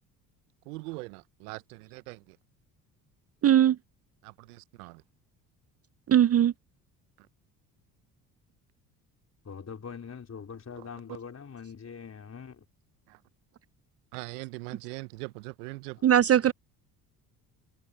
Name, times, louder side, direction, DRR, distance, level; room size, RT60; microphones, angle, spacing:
voice 1, 0.6-2.4 4.2-5.0 7.2-7.3 10.8-10.9 13.1-13.2 14.1-16.0, right 24 dB, 75° right, 1.0 m, -41 dB
voice 2, 3.4-3.8 6.1-6.5 16.0-16.5, right 11 dB, 30° right, 0.6 m, -20 dB
voice 3, 9.4-12.6 16.0-16.1, left 6 dB, 35° left, 4.2 m, -43 dB
hypercardioid pair, 55°, 46 cm